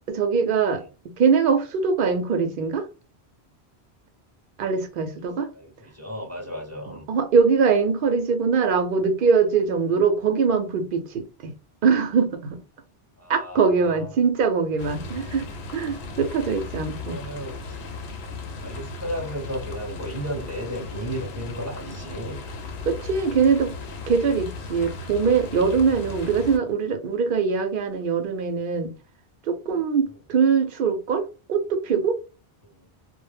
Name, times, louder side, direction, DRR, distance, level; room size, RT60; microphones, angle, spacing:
voice 1, 0.1-2.9 4.6-5.5 7.1-11.5 11.8-12.6 13.3-17.2 22.9-23.7 24.1-28.9 29.5-32.2, right 5 dB, 60° right, 0.7 m, -22 dB
voice 2, 5.5-7.1 13.2-14.1 17.0-17.8 18.6-22.4 30.1-30.2 32.6-32.9, equal, 15° right, 0.7 m, -34 dB
sound 1, 14.8-26.6, left 3 dB, 85° left, 0.9 m, -36 dB
2.1 x 2.0 x 3.2 m
omnidirectional pair, 1.1 m